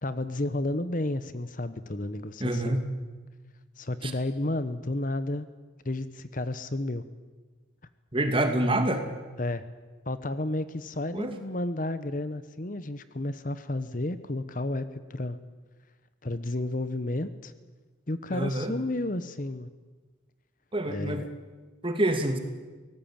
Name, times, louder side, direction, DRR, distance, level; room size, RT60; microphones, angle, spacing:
voice 1, 0.0-2.8 3.8-5.5 5.8-7.0 9.4-9.7 10.1-15.4 16.2-17.5 18.1-19.7 20.9-21.3, left 1 dB, 45° left, 13 dB, 1.0 m, -32 dB
voice 2, 2.4-2.8 4.0-4.1 8.1-9.0 11.1-11.3 18.3-18.7 20.7-21.2 21.8-22.4, right 1 dB, 25° right, 6 dB, 2.5 m, -26 dB
24.0 x 18.5 x 8.9 m, 1.3 s
head